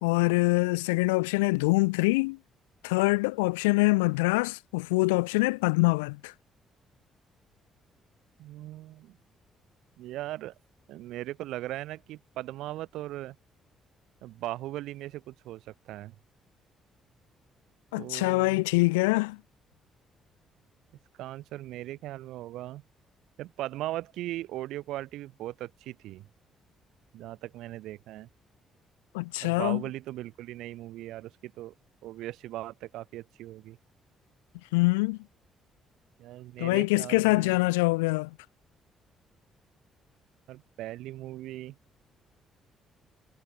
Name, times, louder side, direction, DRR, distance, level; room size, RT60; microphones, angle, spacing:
voice 1, 0.0-2.4 2.8-6.3 17.9-19.4 29.1-29.8 34.7-35.2 36.6-38.3, left 25 dB, 75° left, 1.2 m, -24 dB
voice 2, 8.4-9.2 10.0-10.5 10.9-13.4 14.2-16.2 18.0-18.6 21.2-22.8 23.4-26.2 27.1-28.3 29.4-31.7 32.0-33.8 36.2-37.6 40.5-41.8, right 15 dB, 65° right, 7.5 m, -38 dB
figure-of-eight pair, 45°, 0 cm